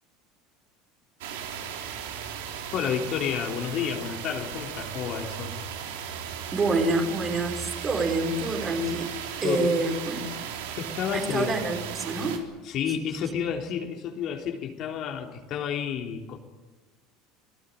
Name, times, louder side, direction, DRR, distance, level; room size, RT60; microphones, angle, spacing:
sound 1, 1.2-12.4, right 8 dB, 85° right, 3.8 m, -36 dB
voice 1, 2.7-5.6 9.4-9.8 10.7-11.5 12.6-16.4, left 8 dB, 50° left, 2 dB, 3.5 m, -30 dB
voice 2, 6.5-9.1 9.4-10.3 11.1-12.4, right 2 dB, 30° right, 3 dB, 5.5 m, -27 dB
27.0 x 17.5 x 9.5 m, 1.2 s
supercardioid pair, 110°, 0 cm